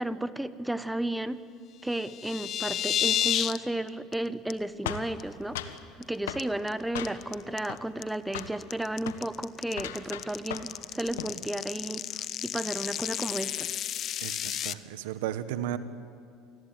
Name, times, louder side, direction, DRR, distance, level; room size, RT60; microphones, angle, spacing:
voice 1, 0.0-1.4 1.8-5.7 6.0-13.8, right 1 dB, 5° right, 14 dB, 1.1 m, -33 dB
sound 1, 1.9-3.6 3.9-4.1 4.5-4.6 5.0-5.2 5.6-6.0 6.4-14.7, left 11 dB, 50° left, 0.9 m, -32 dB
sound 2, 4.9-5.8 6.3-6.5 6.9-7.4 7.7-8.1 8.3-8.6 9.0-9.2 9.7-10.8 11.1-11.4, left 10 dB, 85° left, 1.4 m, -37 dB
voice 2, 14.2-15.8, right 12 dB, 75° right, 12 dB, 1.4 m, -34 dB
28.0 x 19.5 x 9.1 m, 2.3 s
hypercardioid pair, 80°, 0 cm